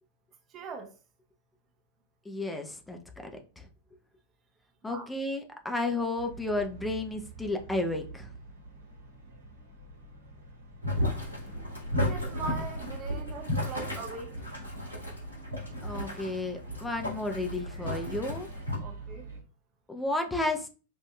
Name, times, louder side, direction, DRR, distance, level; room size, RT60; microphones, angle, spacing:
voice 1, 0.5-0.9 4.8-5.1 12.0-14.3 18.8-19.3, right 4 dB, 30° right, 0.7 m, -40 dB
voice 2, 2.3-3.7 4.8-8.3 15.8-18.5 19.9-20.7, left 2 dB, 10° left, 0.6 m, -32 dB
sound 1, 6.1-19.4, right 3 dB, 70° right, 1.1 m, -47 dB
Boiling, 10.8-18.8, left 1 dB, 80° left, 1.8 m, -34 dB
5.2 x 2.6 x 2.2 m
figure-of-eight pair, 90°, 0 cm